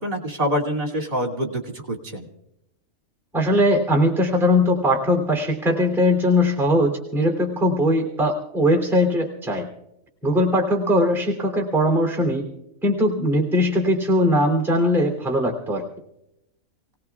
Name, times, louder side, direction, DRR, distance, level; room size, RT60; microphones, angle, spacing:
voice 1, 0.0-2.3, equal, 40° right, 2 dB, 2.6 m, -26 dB
voice 2, 3.3-9.7 10.2-12.5 12.8-15.9, left 1 dB, ahead, 1 dB, 3.0 m, -20 dB
29.5 x 18.0 x 2.4 m, 0.84 s
omnidirectional pair, 1.5 m